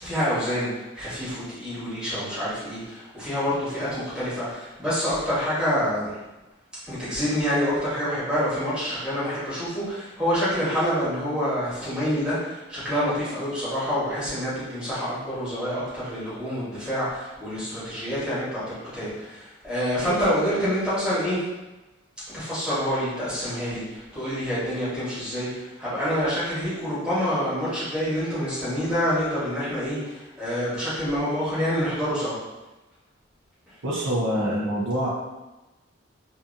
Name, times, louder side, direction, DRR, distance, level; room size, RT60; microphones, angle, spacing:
voice 1, 0.0-6.2 6.9-21.5 22.3-32.4, equal, 5° right, -11 dB, 1.1 m, -27 dB
voice 2, 33.8-35.1, equal, 75° right, -6 dB, 0.5 m, -25 dB
2.7 x 2.4 x 2.5 m, 1.1 s
head